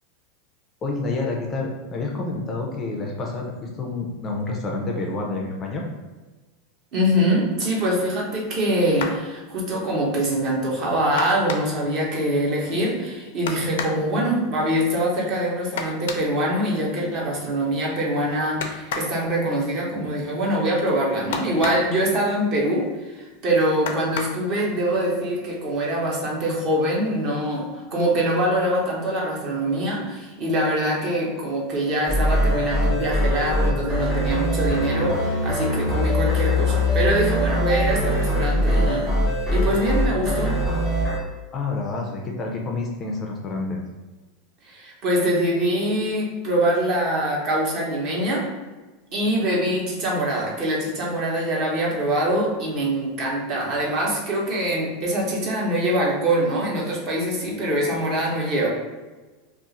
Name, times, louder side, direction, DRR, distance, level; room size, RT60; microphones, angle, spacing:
voice 1, 0.8-5.8 41.5-43.8, left 3 dB, 25° left, 0 dB, 0.4 m, -28 dB
voice 2, 6.9-39.1 39.5-40.6 44.6-48.5 49.1-58.7, right 1 dB, 35° right, -3 dB, 0.9 m, -24 dB
sound 1, 8.9-9.3 11.2-11.9 13.5-14.1 15.8-16.3 18.6-19.2 21.3-22.0 23.9-24.5 25.6-25.7 26.1-26.3, left 5 dB, 85° left, 0.4 m, -31 dB
sound 2, 32.1-41.2, left 1 dB, 15° right, 1.1 m, -22 dB
2.4 x 2.4 x 3.9 m, 1.2 s
supercardioid pair, 160°, 0 cm